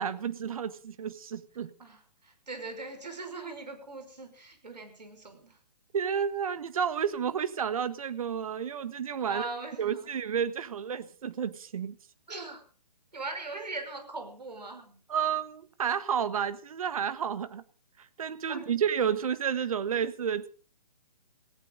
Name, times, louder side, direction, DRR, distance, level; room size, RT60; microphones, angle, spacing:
voice 1, 0.0-1.7 5.9-9.5 9.8-12.0 15.1-17.6 18.0-20.5, right 8 dB, 55° right, 1.5 m, -31 dB
voice 2, 1.8-5.6 9.3-10.1 12.3-12.6 13.1-15.0 18.5-18.8, right 3 dB, 80° right, 5.6 m, -40 dB
18.0 x 16.5 x 3.9 m
figure-of-eight pair, 140°, 21 cm